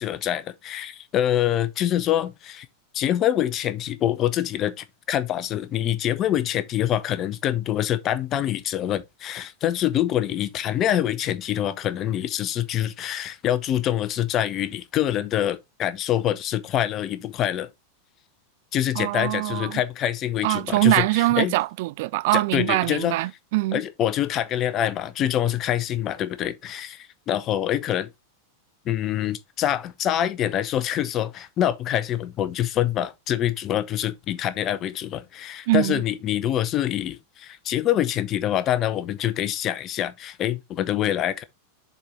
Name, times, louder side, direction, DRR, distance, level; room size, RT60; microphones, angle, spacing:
voice 1, 0.0-2.7 2.9-17.7 18.7-20.9 21.4-21.5 22.3-23.2 23.7-28.1 28.8-41.4, left 11 dB, 30° left, 0.8 m, -25 dB
voice 2, 19.0-19.8 20.4-23.8 35.7-36.0, right 20 dB, 50° right, 0.3 m, -23 dB
7.0 x 4.5 x 3.7 m
figure-of-eight pair, 90°, 0 cm